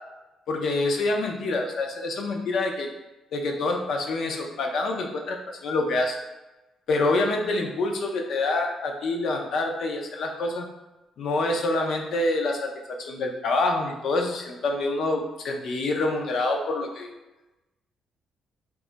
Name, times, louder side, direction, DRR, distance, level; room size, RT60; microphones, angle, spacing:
voice 1, 0.5-2.9 3.3-6.2 6.9-10.7 11.2-17.1, left 2 dB, 70° left, 2 dB, 0.5 m, -26 dB
2.3 x 2.1 x 3.7 m, 1.0 s
cardioid pair, 90°, 0 cm